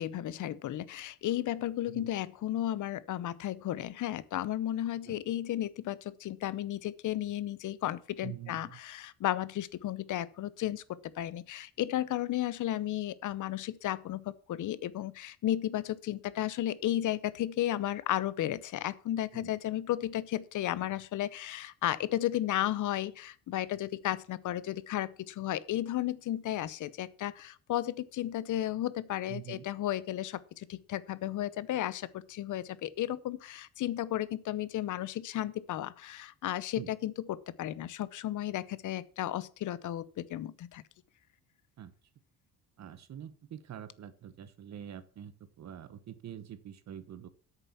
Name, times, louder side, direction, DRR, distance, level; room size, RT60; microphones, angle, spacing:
voice 1, 0.0-10.8 11.2-40.8, left 13 dB, 50° left, 18 dB, 0.7 m, -34 dB
voice 2, 8.2-8.8 19.3-19.5 29.3-29.7 36.8-36.9 41.8-41.9 42.8-47.3, right 10 dB, 45° right, 13 dB, 1.1 m, -45 dB
8.6 x 6.8 x 7.2 m, 0.42 s
cardioid pair, 160°, 38 cm